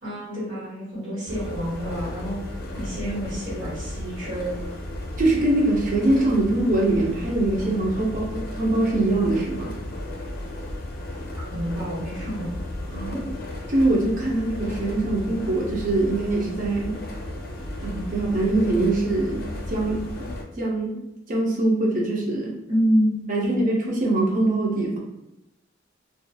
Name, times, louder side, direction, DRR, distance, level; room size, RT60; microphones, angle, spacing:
voice 1, 0.0-2.4 2.7-4.6 11.5-12.5 13.1-13.2 22.7-23.7, equal, 80° right, -10 dB, 1.2 m, -27 dB
sound 1, 1.3-20.4, left 1 dB, 55° left, 0.4 m, -34 dB
voice 2, 5.2-9.7 12.9-13.2 13.7-16.9 17.8-19.4 19.7-20.3 20.6-21.0 21.3-22.6 23.3-25.0, right 2 dB, 45° right, -2 dB, 0.5 m, -23 dB
2.7 x 2.4 x 2.2 m, 0.89 s
head